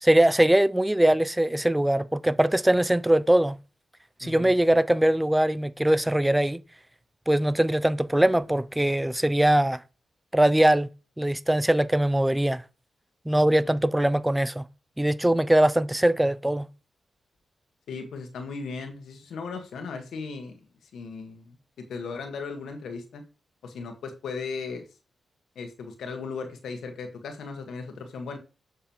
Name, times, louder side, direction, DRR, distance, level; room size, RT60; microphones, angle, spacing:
voice 1, 0.0-3.6 4.2-6.6 7.3-9.8 10.3-10.9 11.2-12.6 13.3-14.6 15.0-16.7, right 1 dB, 10° right, 0.5 m, -21 dB
voice 2, 4.2-4.5 13.6-13.7 17.9-20.6 20.9-21.6 21.9-23.2 23.6-24.9 25.5-28.4, left 4 dB, 85° left, 1.5 m, -37 dB
7.2 x 6.4 x 3.0 m
cardioid pair, 65°, 0 cm